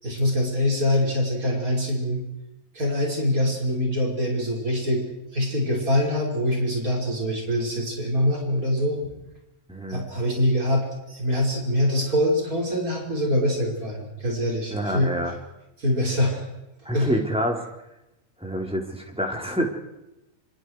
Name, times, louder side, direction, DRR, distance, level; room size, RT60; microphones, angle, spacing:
voice 1, 0.0-2.2 2.7-5.0 5.3-9.1 9.9-15.1 15.8-16.5 16.9-17.1, left 1 dB, 85° right, -1 dB, 6.1 m, -24 dB
voice 2, 9.7-10.0 14.7-15.3 16.8-17.6 18.4-19.7, equal, 5° right, 0 dB, 4.0 m, -27 dB
27.5 x 27.5 x 4.9 m, 0.94 s
omnidirectional pair, 1.5 m